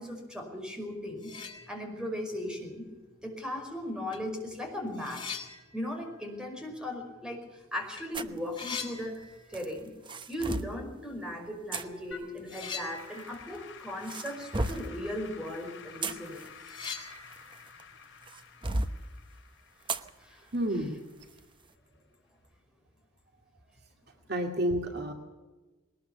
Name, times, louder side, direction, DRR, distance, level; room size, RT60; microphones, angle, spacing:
voice 1, 0.0-1.3 1.7-2.9 3.2-5.3 5.7-9.9 10.3-16.5 20.2-20.5, left 1 dB, 5° right, 2 dB, 5.1 m, -37 dB
sound 1, 0.8-0.9 1.1-2.2 2.6-2.7 3.6-3.7 4.1-7.6 7.8-8.1 8.3-9.9 10.1-10.2 11.7-11.9 12.5-14.6 14.9-15.0 15.4-15.5 15.8-19.0, left 5 dB, 25° left, 2.9 m, -44 dB
sound 2, 8.1-8.4 9.5-10.8 11.7-11.8 13.0-13.6 14.0-14.9 15.7-17.8 18.3-19.0 19.9-20.1 20.5-20.6 21.2-21.4, right 2 dB, 25° right, 0.9 m, -34 dB
Applause / Keyboard (musical), 12.1-21.4, left 6 dB, 60° left, 4.3 m, -51 dB
voice 2, 20.5-20.9 24.3-25.1, right 1 dB, 50° right, 3 dB, 2.4 m, -29 dB
21.0 x 19.5 x 7.0 m, 1.2 s
head